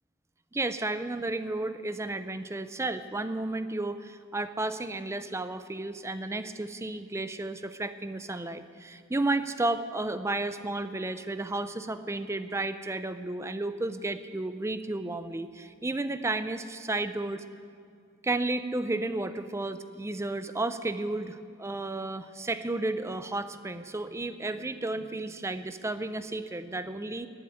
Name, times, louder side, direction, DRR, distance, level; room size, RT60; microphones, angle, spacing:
voice 1, 0.5-17.4 18.2-27.3, right 2 dB, 15° right, 12 dB, 0.5 m, -32 dB
11.5 x 9.1 x 10.0 m, 2.3 s
head